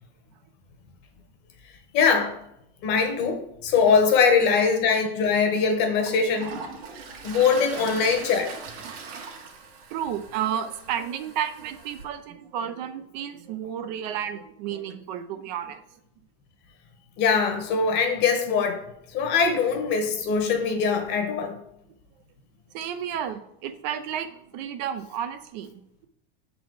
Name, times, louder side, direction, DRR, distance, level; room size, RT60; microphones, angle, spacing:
voice 1, 1.9-2.4 2.8-6.5 7.2-8.5 17.2-18.8 19.1-21.6, left 5 dB, 35° left, 5 dB, 1.1 m, -22 dB
Toilet flush, 5.2-5.3 5.8-12.0, right 5 dB, 70° right, 1.6 m, -41 dB
voice 2, 8.8-9.2 9.9-15.8 22.7-25.8, right 9 dB, 45° right, 9 dB, 0.5 m, -32 dB
7.2 x 4.1 x 4.7 m, 0.78 s
supercardioid pair, 175°, 31 cm